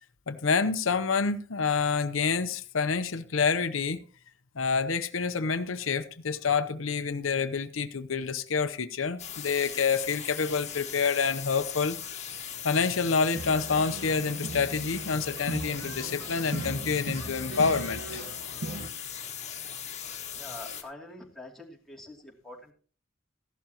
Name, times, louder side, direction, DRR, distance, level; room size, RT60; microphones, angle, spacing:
voice 1, 0.3-4.0 4.6-12.0 12.6-18.2, left 5 dB, 90° left, 0.8 m, -28 dB
sound 1, 9.2-20.8, left 9 dB, 35° left, 1.8 m, -39 dB
sound 2, 13.3-18.9, right 2 dB, 85° right, 1.3 m, -38 dB
voice 2, 20.3-22.7, left 1 dB, ahead, 2.7 m, -45 dB
15.0 x 11.5 x 2.9 m
head